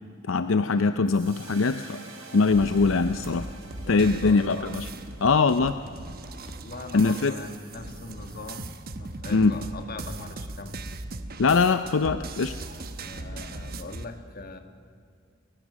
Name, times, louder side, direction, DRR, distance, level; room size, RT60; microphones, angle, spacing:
voice 1, 0.2-2.0 2.3-3.5 3.9-4.9 5.2-5.8 6.9-7.3 9.3-9.5 11.4-12.6, left 4 dB, 70° left, 10 dB, 0.6 m, -22 dB
sound 1, 1.0-7.4, right 3 dB, 85° right, 4.5 m, -49 dB
sound 2, 2.5-14.0, right 2 dB, 45° right, 1.1 m, -38 dB
voice 2, 3.8-4.7 6.5-10.7 13.0-14.6, left 3 dB, 45° left, 6 dB, 1.7 m, -41 dB
29.5 x 16.0 x 6.3 m, 2.3 s
head